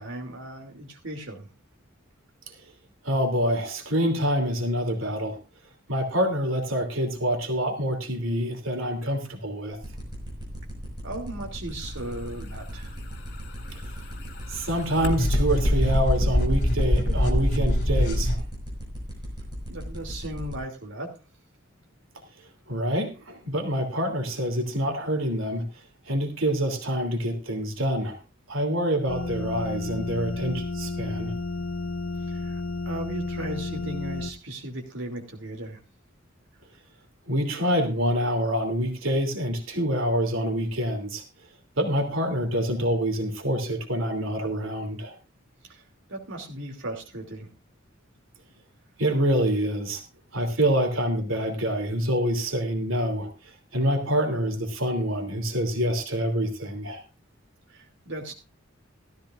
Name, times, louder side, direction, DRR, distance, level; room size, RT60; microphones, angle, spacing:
voice 1, 0.0-1.5 11.0-13.0 19.7-21.1 32.3-35.8 45.6-45.8 46.1-47.5 57.7-58.3, right 1 dB, 65° right, 1 dB, 2.8 m, -37 dB
voice 2, 3.0-5.4 5.9-9.8 14.5-18.4 22.7-25.6 26.1-28.2 28.5-31.3 37.3-41.2 41.8-45.1 49.0-50.0 50.3-57.0, equal, 90° right, 4 dB, 2.9 m, -26 dB
sound 1, 9.7-20.6, equal, 25° right, 5.5 m, -37 dB
sound 2, 13.2-18.4, equal, 60° left, 2.9 m, -24 dB
sound 3, 29.1-34.3, left 3 dB, 90° left, 0.9 m, -32 dB
16.0 x 13.5 x 2.5 m, 0.29 s
head